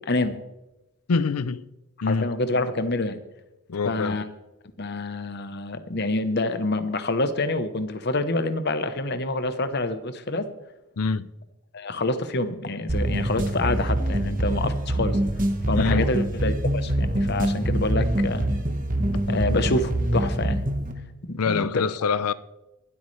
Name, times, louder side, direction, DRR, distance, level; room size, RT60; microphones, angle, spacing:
voice 1, 0.1-0.4 2.1-3.2 3.9-4.3 4.8-10.5 11.7-15.2 15.7-18.5 19.3-20.6 21.3-21.9, left 2 dB, 50° left, 1.0 m, -27 dB
voice 2, 1.1-1.7 2.0-2.3 3.7-4.2 11.0-11.3 15.8-16.1 21.4-22.3, left 5 dB, 85° left, 0.6 m, -25 dB
sound 1, 12.9-20.9, right 1 dB, 35° right, 1.4 m, -25 dB
24.0 x 8.4 x 3.3 m
head